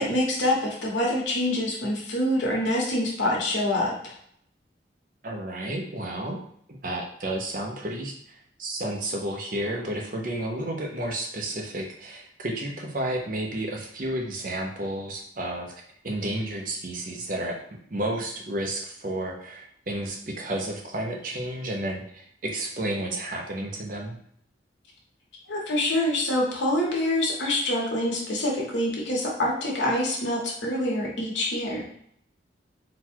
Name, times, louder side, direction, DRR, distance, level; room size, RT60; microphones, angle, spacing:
voice 1, 0.0-4.2 25.5-31.8, left 1 dB, 80° left, -2 dB, 1.2 m, -26 dB
voice 2, 5.2-6.4 6.7-15.7 16.0-17.6 17.9-24.2, right 1 dB, 45° right, 1 dB, 0.7 m, -31 dB
4.0 x 2.3 x 4.4 m, 0.67 s
head